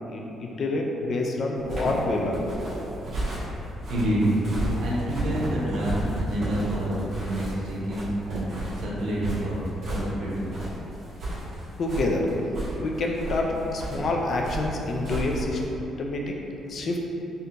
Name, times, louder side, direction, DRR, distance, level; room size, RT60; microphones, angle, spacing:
voice 1, 0.0-2.5 11.8-12.3 12.8-15.6 16.0-16.4 16.7-17.0, left 2 dB, 45° left, 0 dB, 0.4 m, -27 dB
sound 1, 1.6-15.7, right 1 dB, 50° right, 1.2 m, -33 dB
voice 2, 3.9-4.3 4.8-8.5 8.8-9.5 9.8-10.5, right 1 dB, 80° right, -6 dB, 0.8 m, -28 dB
4.3 x 2.6 x 2.6 m, 3.0 s
cardioid pair, 150°, 0 cm